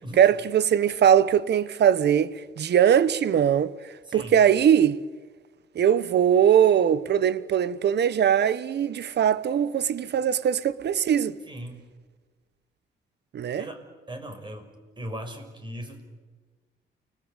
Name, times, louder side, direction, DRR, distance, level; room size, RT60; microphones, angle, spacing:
voice 1, 0.2-3.7 4.1-5.0 5.7-11.4 13.3-13.6, right 9 dB, 60° right, 1.1 m, -21 dB
voice 2, 4.0-4.4 11.5-11.8 13.6-13.8 14.1-14.7 15.0-16.0, equal, 25° right, 6.1 m, -38 dB
29.5 x 20.5 x 8.3 m
cardioid pair, 90°, 20 cm